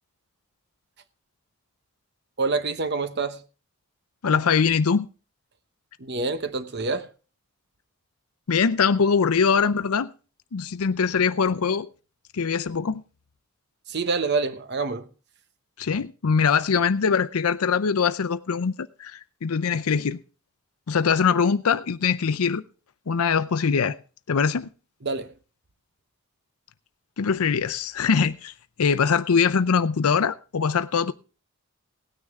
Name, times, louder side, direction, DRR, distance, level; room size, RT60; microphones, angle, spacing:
voice 1, 2.4-3.4 6.0-7.1 13.9-15.0 25.0-25.3, right 4 dB, 50° right, 1.0 m, -26 dB
voice 2, 4.2-5.1 8.5-10.1 10.5-11.9 12.3-13.0 15.8-20.2 20.9-22.6 23.1-24.0 24.3-24.7 27.2-28.5 28.8-31.1, left 6 dB, 85° left, 0.6 m, -22 dB
17.5 x 9.6 x 3.6 m
head